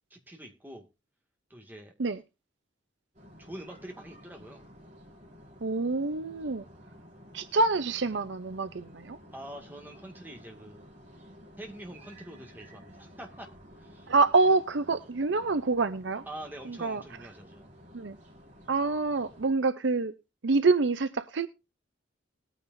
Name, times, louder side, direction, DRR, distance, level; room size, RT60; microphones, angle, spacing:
voice 1, 0.1-0.9 1.5-1.9 3.4-4.7 9.3-10.9 11.6-13.5 13.8-14.1 16.3-17.7, right 1 dB, 10° right, 2.1 m, -45 dB
sound 1, 3.1-19.5, equal, 40° right, 4.2 m, -53 dB
voice 2, 5.6-6.6 7.3-9.2 14.1-16.2 16.7-17.0 17.9-18.2 18.7-20.1 20.4-21.5, right 3 dB, 65° right, 0.6 m, -26 dB
20.0 x 9.3 x 2.6 m
head